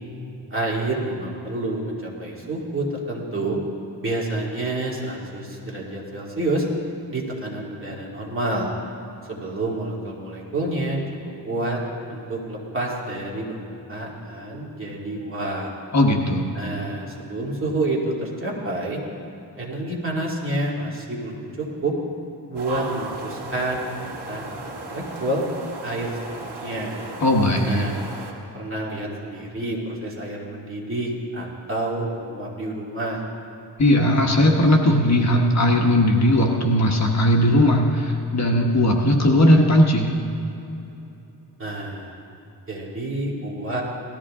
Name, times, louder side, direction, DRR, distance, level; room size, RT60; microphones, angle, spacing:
voice 1, 0.5-3.6 4.0-6.7 7.1-8.7 9.3-11.0 11.5-11.8 12.1-15.7 16.5-19.0 19.6-21.9 22.5-25.4 25.8-27.0 27.6-28.0 28.5-33.2 41.6-42.2 42.7-43.8, right 2 dB, 30° right, -4 dB, 2.4 m, -28 dB
voice 2, 15.9-16.6 27.2-27.9 33.8-40.1, left 1 dB, 40° left, 0 dB, 1.3 m, -18 dB
sound 1, 22.5-28.3, right 3 dB, 70° right, 2.1 m, -36 dB
18.5 x 14.0 x 3.7 m, 2.9 s
wide cardioid pair, 145°, 41 cm